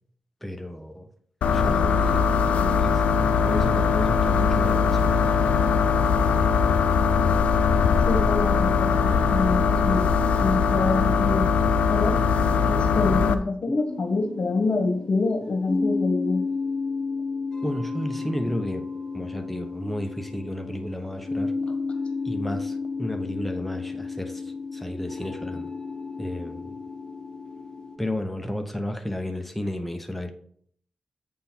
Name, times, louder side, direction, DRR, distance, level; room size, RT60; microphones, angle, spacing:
voice 1, 0.4-1.1 1.5-2.3 2.5-3.0 3.4-5.2 17.6-18.9 19.1-21.5 22.2-25.7 26.2-26.8 28.0-30.3, left 1 dB, 5° left, 5 dB, 0.8 m, -32 dB
sound 1, 1.4-13.3, left 5 dB, 85° left, 0.4 m, -21 dB
voice 2, 8.1-11.4 11.9-12.2 12.7-16.4, left 3 dB, 60° left, 5 dB, 1.4 m, -26 dB
sound 2, 13.9-28.0, left 4 dB, 35° left, 1.1 m, -32 dB
8.2 x 3.7 x 4.4 m, 0.62 s
cardioid pair, 45°, 2 cm